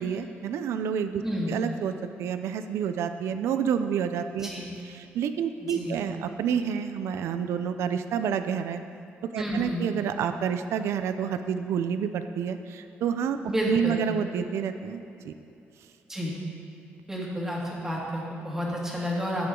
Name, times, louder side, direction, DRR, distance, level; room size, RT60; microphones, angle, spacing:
voice 1, 0.0-1.9 2.2-4.5 4.8-8.8 9.3-15.3, right 7 dB, 85° right, 9 dB, 0.5 m, -29 dB
voice 2, 1.2-1.6 4.4-4.7 5.7-6.0 9.4-9.9 13.5-14.0 16.1-16.3 17.1-19.5, equal, 10° right, -4 dB, 2.3 m, -30 dB
14.0 x 9.7 x 3.8 m, 2.7 s
cardioid pair, 145°, 4 cm